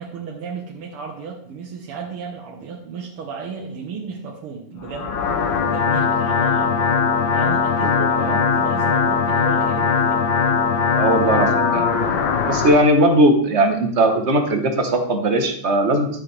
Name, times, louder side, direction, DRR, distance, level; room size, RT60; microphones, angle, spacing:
voice 1, 0.0-5.1 5.5-10.2, right 5 dB, 80° right, -1 dB, 2.0 m, -34 dB
sound 1, 4.8-12.8, left 5 dB, 65° left, 1.5 m, -20 dB
voice 2, 7.8-8.4 11.0-11.9 12.5-16.1, right 1 dB, 40° right, 4 dB, 1.2 m, -18 dB
12.5 x 7.4 x 3.3 m, 0.65 s
omnidirectional pair, 2.4 m